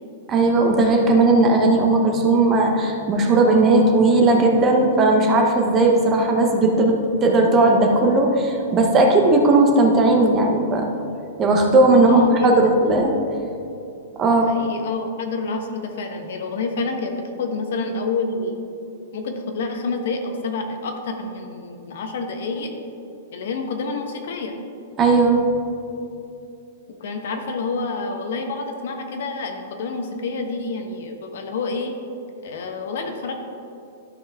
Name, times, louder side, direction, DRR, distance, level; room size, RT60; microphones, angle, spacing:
voice 1, 0.3-10.9 11.4-13.1 14.2-14.5 25.0-25.4, right 2 dB, 20° right, 2 dB, 0.8 m, -17 dB
voice 2, 12.1-12.7 14.5-18.6 19.1-22.7 23.3-24.5 27.0-31.9 32.4-33.3, left 3 dB, 65° left, 4 dB, 1.1 m, -28 dB
12.5 x 5.5 x 3.6 m, 2.7 s
supercardioid pair, 165°, 0 cm